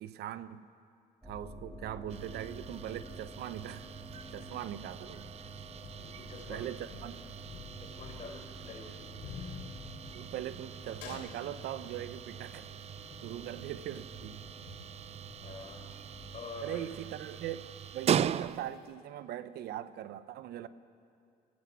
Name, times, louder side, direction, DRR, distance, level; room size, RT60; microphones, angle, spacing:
voice 1, 0.0-0.7 1.2-3.9 4.3-5.3 6.5-7.2 10.1-12.7 13.2-14.4 16.6-17.6 17.9-20.7, right 12 dB, 75° right, 13 dB, 0.8 m, -40 dB
sound 1, 1.2-17.7, left 1 dB, 10° right, 6.0 m, -53 dB
sound 2, 2.1-18.9, right 9 dB, 40° right, 0.4 m, -40 dB
sound 3, 4.1-16.9, left 7 dB, 85° left, 2.8 m, -51 dB
voice 2, 6.0-6.7 7.1-7.2 7.8-9.1 15.4-15.9 16.3-16.9, left 4 dB, 45° left, 2 dB, 4.4 m, -47 dB
26.0 x 15.5 x 7.0 m, 2.4 s
cardioid pair, 110°, 17 cm